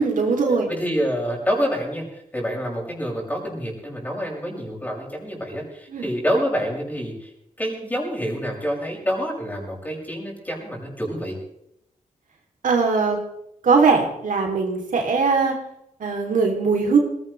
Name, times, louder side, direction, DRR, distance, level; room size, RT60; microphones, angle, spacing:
voice 1, 0.0-0.7 5.9-6.1 12.6-13.2 13.6-15.5 16.0-17.0, right 4 dB, 70° right, 1 dB, 3.1 m, -20 dB
voice 2, 0.6-7.3 7.6-11.4, equal, 10° left, -2 dB, 6.5 m, -27 dB
21.0 x 16.5 x 3.3 m, 0.79 s
wide cardioid pair, 110°, 14 cm